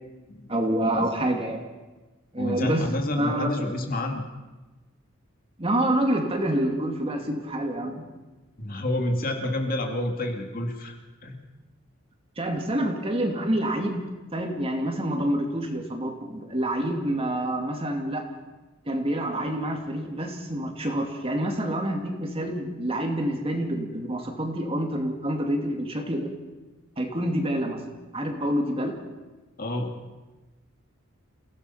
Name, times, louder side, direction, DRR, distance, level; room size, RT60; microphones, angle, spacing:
voice 1, 0.5-1.6 2.3-2.9 3.2-3.6 5.6-8.1 12.4-14.0 14.3-18.2 18.9-26.3 27.0-27.8 28.1-29.0, right 1 dB, 25° right, 3 dB, 2.5 m, -27 dB
voice 2, 2.4-4.2 8.6-10.9 11.2-11.4 29.6-30.0, left 1 dB, 45° left, 3 dB, 2.3 m, -29 dB
28.5 x 17.0 x 5.7 m, 1.2 s
head